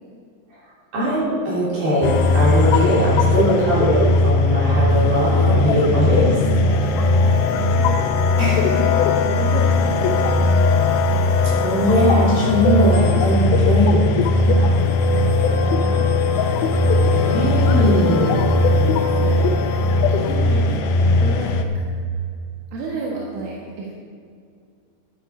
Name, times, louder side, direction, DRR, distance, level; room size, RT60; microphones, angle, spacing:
voice 1, 0.9-6.4 8.4-8.9 11.6-14.1 17.1-18.5, equal, 50° right, -7 dB, 5.0 m, -20 dB
sound 1, 2.0-21.6, left 3 dB, 90° left, 2.1 m, -18 dB
voice 2, 6.6-8.0 8.5-10.2 14.2-16.1 18.7-19.8 20.1-21.7 22.7-23.9, right 3 dB, 85° right, -4 dB, 4.1 m, -32 dB
13.0 x 11.0 x 5.0 m, 2.2 s
omnidirectional pair, 5.4 m